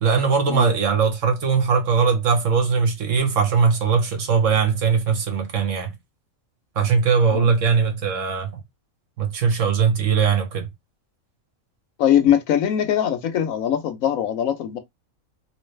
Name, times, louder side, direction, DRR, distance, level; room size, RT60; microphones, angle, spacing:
voice 1, 0.0-5.9 6.7-8.5 9.2-10.7, right 5 dB, 65° right, 1.4 m, -20 dB
voice 2, 12.0-14.8, left 10 dB, 75° left, 1.1 m, -21 dB
3.1 x 3.0 x 3.2 m
omnidirectional pair, 1.4 m